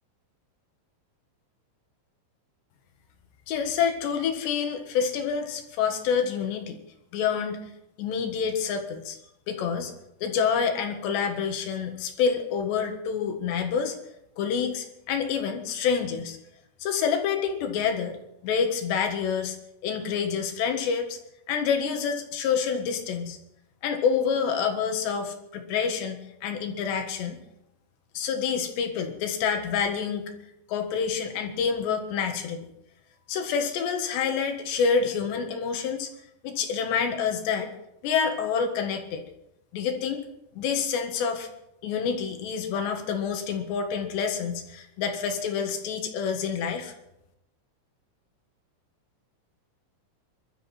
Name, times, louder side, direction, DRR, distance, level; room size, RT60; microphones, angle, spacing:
voice 1, 3.5-6.8 7.1-7.6 8.0-9.2 9.5-9.9 10.2-14.0 14.4-16.4 16.8-18.2 18.4-19.6 19.8-21.2 21.5-23.4 23.8-27.4 28.2-30.3 30.7-32.7 33.3-36.1 36.4-37.7 38.0-39.2 39.7-40.3 40.6-41.5 41.8-46.9, left 6 dB, 70° left, 5 dB, 3.6 m, -27 dB
25.0 x 13.0 x 4.3 m, 0.83 s
omnidirectional pair, 5.4 m